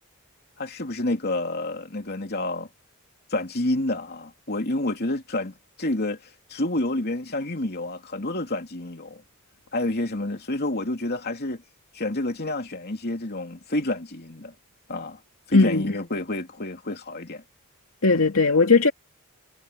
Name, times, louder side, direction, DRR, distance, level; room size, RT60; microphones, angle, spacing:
voice 1, 0.6-2.7 3.3-9.2 9.7-11.6 11.9-14.5 14.9-15.2 15.5-17.4, left 2 dB, 45° left, 3.0 m, -29 dB
voice 2, 15.5-15.9 18.0-18.9, left 3 dB, 70° left, 2.3 m, -18 dB
head